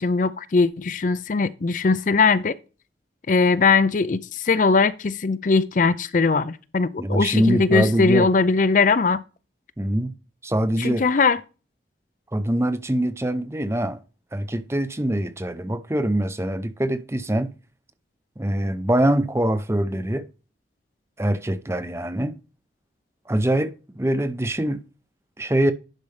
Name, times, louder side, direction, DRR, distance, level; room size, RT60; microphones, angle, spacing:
voice 1, 0.0-2.5 3.3-9.2 10.8-11.4, left 4 dB, 45° left, 0.4 m, -20 dB
voice 2, 7.0-8.3 9.8-10.1 10.4-11.1 12.3-14.0 14.3-17.5 18.4-20.3 21.2-22.3 23.3-24.8 25.4-25.7, right 1 dB, 15° right, 0.6 m, -23 dB
10.5 x 5.4 x 3.3 m
head